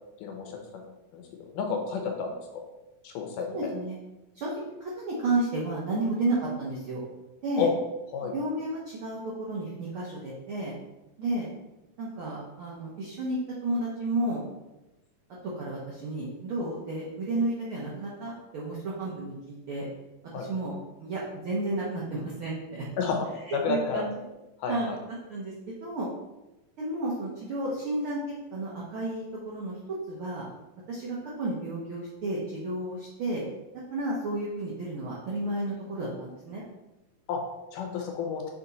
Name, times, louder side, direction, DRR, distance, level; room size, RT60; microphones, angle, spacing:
voice 1, 0.2-0.8 1.1-1.2 1.5-2.6 3.0-3.7 7.6-7.7 8.1-8.3 20.3-20.5 23.0-24.0 24.6-25.0 37.3-37.4 37.7-38.4, left 5 dB, 80° left, 3 dB, 2.4 m, -30 dB
voice 2, 3.5-3.9 4.3-4.5 4.8-7.0 7.4-7.7 8.2-10.7 11.2-11.5 12.0-14.4 15.5-19.9 20.3-22.9 23.5-24.1 24.7-24.9 25.3-25.5 25.8-26.1 26.8-28.2 28.5-30.4 30.9-33.4 33.9-36.6, right 2 dB, 70° right, -5 dB, 1.2 m, -32 dB
7.2 x 3.5 x 4.0 m, 0.98 s
omnidirectional pair, 3.9 m